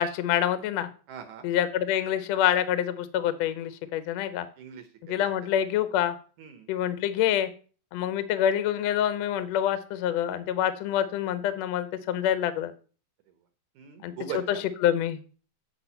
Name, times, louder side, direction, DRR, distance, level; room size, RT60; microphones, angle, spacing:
voice 1, 0.0-0.9 1.4-4.5 5.1-6.1 6.7-7.5 7.9-12.7 14.0-14.1 14.5-14.6 14.8-15.2, left 10 dB, 85° left, 12 dB, 1.5 m, -26 dB
voice 2, 1.1-1.5 4.6-5.2 5.4-5.5 6.4-6.7 8.0-8.1 13.8-14.6, right 8 dB, 70° right, 6 dB, 2.0 m, -40 dB
8.5 x 4.7 x 5.5 m, 0.39 s
omnidirectional pair, 4.1 m